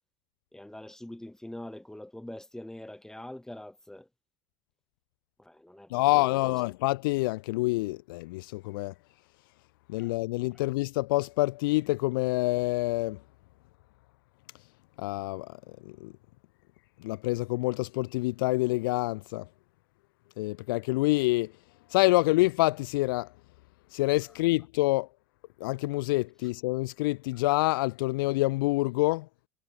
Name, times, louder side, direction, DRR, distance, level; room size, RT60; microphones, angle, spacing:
voice 1, 0.5-4.1 5.4-6.5 10.0-10.1, left 1 dB, 5° left, 1.9 m, -44 dB
voice 2, 5.9-8.9 9.9-13.2 15.0-15.5 15.9-16.1 17.0-19.5 20.4-21.5 21.9-23.3 23.9-25.1 25.6-29.3, left 21 dB, 70° left, 0.4 m, -27 dB
hypercardioid pair, 75°, 12 cm